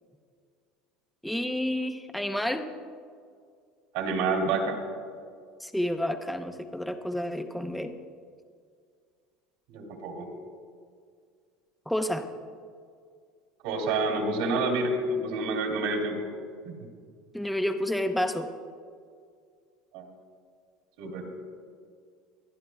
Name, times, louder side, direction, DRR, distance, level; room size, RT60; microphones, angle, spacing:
voice 1, 1.2-2.7 5.6-7.9 11.9-12.3 17.3-18.5, left 1 dB, ahead, 7 dB, 0.6 m, -30 dB
voice 2, 3.9-4.8 9.7-10.3 13.6-16.3 16.6-16.7 19.9-20.1 21.0-21.3, right 3 dB, 75° right, 2 dB, 2.6 m, -28 dB
25.0 x 11.5 x 2.3 m, 2.1 s
cardioid pair, 155°, 0 cm